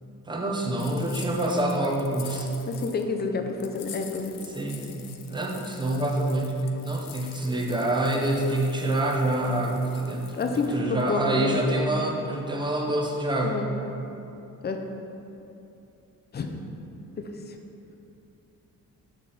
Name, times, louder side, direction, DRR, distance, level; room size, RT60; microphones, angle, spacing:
voice 1, 0.3-2.5 4.5-13.6, right 1 dB, 15° right, -1 dB, 0.7 m, -26 dB
sound 1, 0.8-3.0 3.6-11.1, left 9 dB, 75° left, 0.6 m, -46 dB
voice 2, 2.7-4.3 10.3-11.5 13.4-13.7 14.6-14.8 16.3-16.6 17.2-17.6, left 4 dB, 30° left, 4 dB, 0.5 m, -29 dB
7.3 x 4.2 x 4.8 m, 2.9 s
wide cardioid pair, 165°, 34 cm